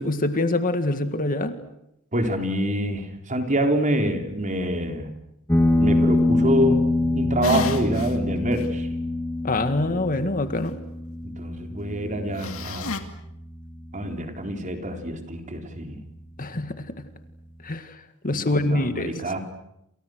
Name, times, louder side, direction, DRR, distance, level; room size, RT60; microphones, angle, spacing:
voice 1, 0.0-1.6 9.4-10.8 16.4-16.9 17.6-18.0 18.2-19.1, left 2 dB, 40° left, 9 dB, 2.0 m, -25 dB
voice 2, 2.1-5.1 5.8-6.8 7.1-8.9 11.2-13.0 13.9-16.0 18.3-19.4, equal, 35° right, 5 dB, 3.9 m, -26 dB
sound 1, 5.5-14.5, left 2 dB, 10° left, 2.3 m, -25 dB
sound 2, 7.4-8.1 8.6-8.7 12.4-13.0, left 3 dB, 65° left, 2.5 m, -29 dB
29.5 x 28.0 x 6.5 m, 0.81 s
head